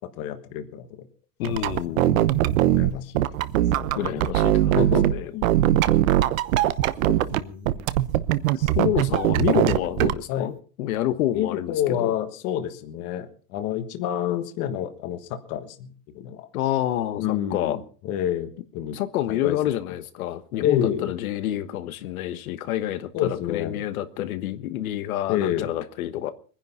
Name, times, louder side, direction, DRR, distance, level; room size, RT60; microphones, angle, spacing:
voice 1, 0.2-0.9 1.8-3.2 3.8-3.9 4.7-5.1 5.3-5.5 7.0-7.8 8.6-8.7 10.3-10.5 11.3-16.4 17.2-19.0 19.3-19.6 20.6-21.1 23.1-23.8 25.3-25.7, left 10 dB, 30° left, 1.4 m, -29 dB
voice 2, 1.4-2.0 3.9-5.3 8.7-10.5 10.8-12.1 16.5-17.8 18.9-26.3, left 12 dB, 65° left, 1.3 m, -28 dB
sound 1, 1.4-5.1 5.4-7.4 7.6-10.1, right 13 dB, 60° right, 1.0 m, -21 dB
22.5 x 10.5 x 5.7 m
supercardioid pair, 175°, 46 cm